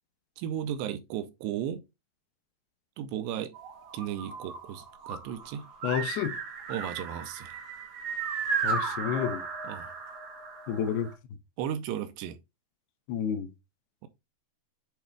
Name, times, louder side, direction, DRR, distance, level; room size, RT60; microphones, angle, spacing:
voice 1, 0.4-1.8 3.0-3.5 3.9-5.7 6.7-7.6 9.6-9.9 11.6-12.4 14.0-14.1, right 10 dB, 85° right, 2.8 m, -35 dB
sound 1, 3.5-11.1, right 5 dB, 60° right, 2.1 m, -35 dB
voice 2, 5.8-6.4 8.6-9.4 10.7-11.1 13.1-13.5, left 8 dB, 75° left, 2.7 m, -30 dB
8.3 x 3.5 x 3.3 m
omnidirectional pair, 5.0 m